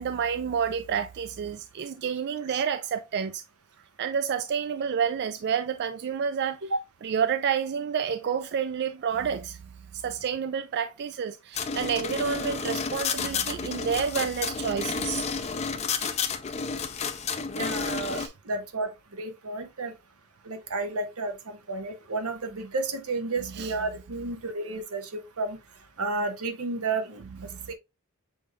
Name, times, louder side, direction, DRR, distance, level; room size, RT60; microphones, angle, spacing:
voice 1, 0.0-3.4 4.0-6.7 7.0-9.6 9.9-15.2 18.1-18.3 23.4-23.7 27.4-27.7, right 7 dB, 50° right, 0.3 m, -29 dB
sound 1, 11.5-18.3, left 5 dB, 30° left, 0.5 m, -31 dB
voice 2, 17.6-19.9 20.4-25.6 26.0-27.2 27.7-27.8, right 3 dB, 85° right, 1.0 m, -32 dB
6.9 x 3.2 x 2.3 m
head